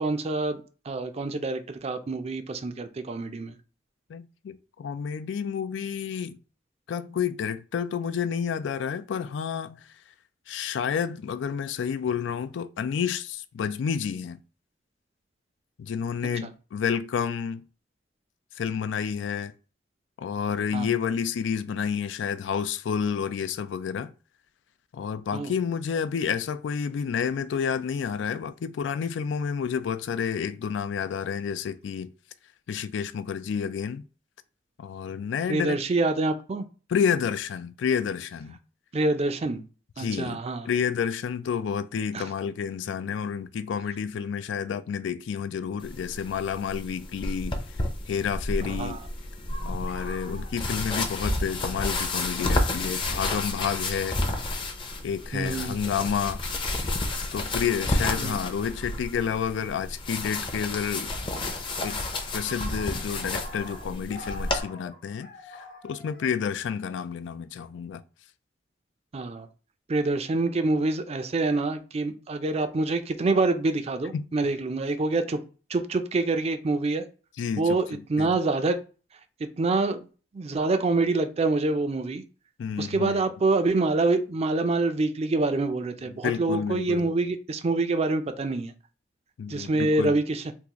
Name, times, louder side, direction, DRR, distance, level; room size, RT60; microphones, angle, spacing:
voice 1, 0.0-3.5 16.4-16.5 20.7-20.9 25.3-25.5 35.5-36.6 38.9-39.6 40.0-40.7 42.1-42.3 48.7-49.0 55.3-55.8 58.2-58.3 69.1-69.5 69.9-75.4 75.7-77.0 77.6-78.8 79.4-80.0 80.3-82.2 82.8-88.7 89.5-90.4, right 3 dB, 35° right, 0.4 m, -26 dB
voice 2, 4.1-6.4 6.9-9.9 10.5-14.4 15.8-17.6 18.6-19.5 20.2-24.1 24.9-32.1 32.7-34.0 34.8-35.8 36.9-38.6 40.0-47.6 48.1-49.0 49.6-54.2 55.0-56.4 57.3-61.1 61.8-62.0 62.3-68.0 74.1-74.3 77.4-78.4 82.6-83.2 86.1-87.1 89.4-90.2, left 7 dB, 90° left, 0.3 m, -30 dB
sound 1, 45.8-64.6, left 2 dB, 30° left, 0.6 m, -31 dB
sound 2, 49.5-51.6 51.8-51.9 52.9-53.2 54.2-54.4 55.2-55.6 58.3-58.4 59.7-60.6 60.9-67.4, left 1 dB, 55° left, 1.0 m, -45 dB
3.7 x 2.4 x 2.9 m
head